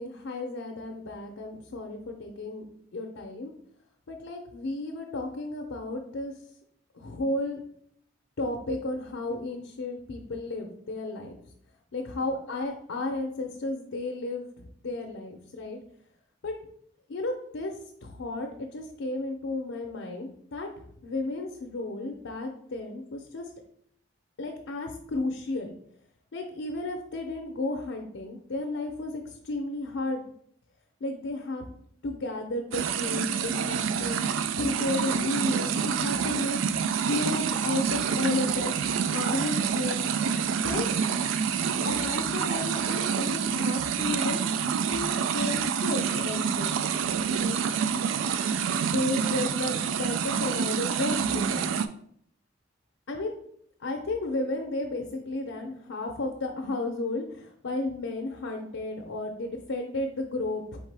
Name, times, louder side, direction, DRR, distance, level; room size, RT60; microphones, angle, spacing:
voice 1, 0.0-2.6 2.9-3.5 4.1-6.3 6.9-7.6 8.4-11.4 11.9-15.8 16.4-16.5 17.1-23.5 24.4-25.7 26.3-30.2 31.0-31.6 32.0-36.8 37.1-38.7 39.1-40.1 40.6-41.0 41.8-44.4 44.9-46.7 47.4-47.6 48.8-51.7 53.1-53.3 53.8-60.8, left 2 dB, 75° left, 1 dB, 0.6 m, -33 dB
sound 1, 32.7-51.9, right 7 dB, 80° right, 0.3 m, -27 dB
4.4 x 3.6 x 3.3 m, 0.66 s
head